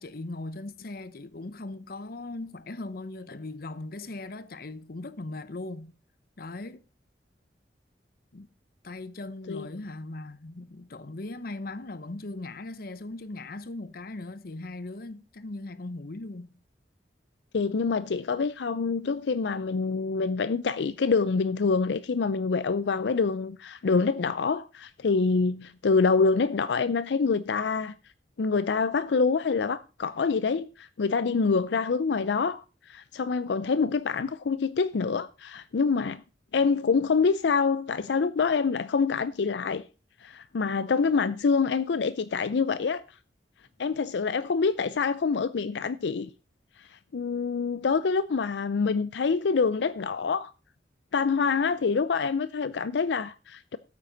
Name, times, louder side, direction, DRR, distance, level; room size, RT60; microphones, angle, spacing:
voice 1, 0.0-5.9 6.4-6.8 8.3-8.5 8.8-16.5, left 2 dB, 55° left, 0.8 m, -39 dB
voice 2, 17.5-27.9 28.4-36.2 36.5-39.8 40.2-43.0 43.8-46.3 46.8-50.5 51.1-53.8, left 5 dB, 80° left, 0.5 m, -26 dB
14.0 x 8.5 x 3.9 m
head